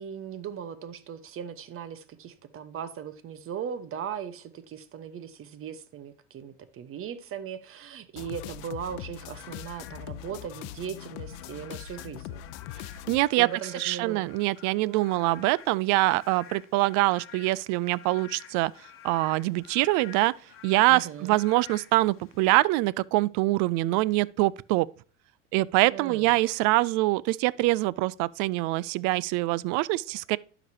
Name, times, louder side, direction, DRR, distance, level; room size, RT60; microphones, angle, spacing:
voice 1, 0.0-12.4 13.4-14.3 14.8-15.5 20.9-21.4 25.9-26.3, right 8 dB, 35° right, 1.0 m, -38 dB
sound 1, 8.1-13.2, left 12 dB, 65° left, 0.7 m, -41 dB
Frog / Rain, 9.1-22.6, left 9 dB, 35° left, 1.4 m, -50 dB
voice 2, 13.1-13.5 13.8-18.7 19.0-20.3 20.6-24.9 25.5-30.4, right 19 dB, 55° right, 0.5 m, -24 dB
11.5 x 5.1 x 2.7 m
hypercardioid pair, 95°, 37 cm